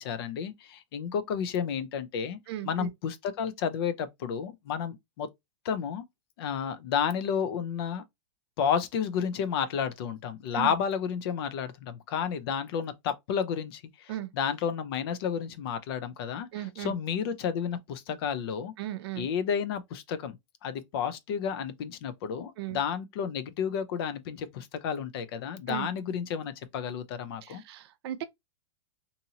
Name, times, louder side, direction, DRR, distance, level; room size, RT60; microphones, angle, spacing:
voice 1, 0.0-2.4 2.6-5.3 5.6-6.0 6.4-8.0 8.6-16.5 16.8-18.7 19.2-27.6, left 7 dB, 50° left, 0.5 m, -31 dB
voice 2, 2.5-2.9 10.5-10.7 14.1-14.3 16.5-16.9 18.8-19.3 22.6-22.8 25.7-25.9 27.4-28.2, right 13 dB, 55° right, 0.5 m, -36 dB
2.8 x 2.6 x 2.7 m
supercardioid pair, 160°, 16 cm